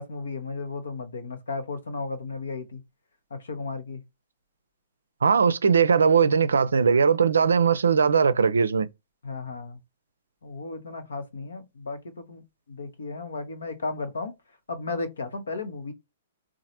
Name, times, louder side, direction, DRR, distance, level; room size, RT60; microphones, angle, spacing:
voice 1, 0.0-2.8 3.3-4.0 9.2-9.8 10.4-12.4 12.7-14.3 14.7-15.9, left 3 dB, 75° left, 1.0 m, -34 dB
voice 2, 5.2-8.9, right 6 dB, 75° right, 0.4 m, -20 dB
4.0 x 2.5 x 2.9 m
figure-of-eight pair, 115°, 0 cm